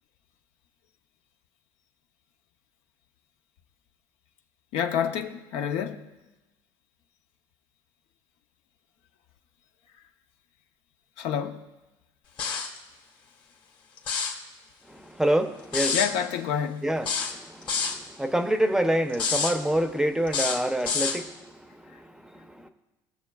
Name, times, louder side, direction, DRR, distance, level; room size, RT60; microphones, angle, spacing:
voice 1, 4.7-6.1 11.2-11.7 15.9-16.9, left 8 dB, 75° left, 0.7 m, -28 dB
sound 1, 12.4-12.8 14.0-14.4 15.7-16.1 17.0-18.0 19.1-19.6 20.3-21.2, left 5 dB, 55° left, 1.6 m, -27 dB
voice 2, 14.9-16.0 16.8-22.7, right 1 dB, 5° right, 0.6 m, -27 dB
18.5 x 6.8 x 2.3 m
supercardioid pair, 105°, 10 cm